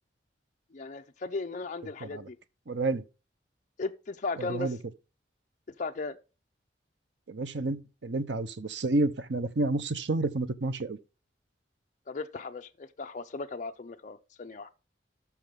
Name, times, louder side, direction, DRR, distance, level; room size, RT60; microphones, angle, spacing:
voice 1, 0.7-2.4 3.8-4.7 5.8-6.2 12.1-14.7, left 3 dB, 45° left, 0.6 m, -36 dB
voice 2, 2.7-3.0 4.4-4.8 7.3-11.0, right 2 dB, 80° right, 0.9 m, -30 dB
13.5 x 5.9 x 3.6 m
head